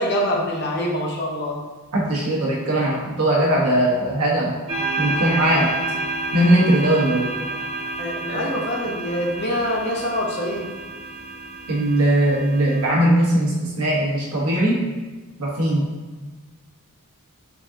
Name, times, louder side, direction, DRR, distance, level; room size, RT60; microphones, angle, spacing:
voice 1, 0.0-1.6 8.0-10.7, equal, 50° left, -1 dB, 0.7 m, -25 dB
voice 2, 1.9-4.5 5.0-5.7 6.3-7.3 8.3-8.5 11.7-14.8 15.4-15.9, right 1 dB, 85° right, -4 dB, 1.1 m, -19 dB
sound 1, 4.7-12.9, right 2 dB, 25° right, 1.2 m, -29 dB
4.0 x 3.6 x 2.6 m, 1.3 s
head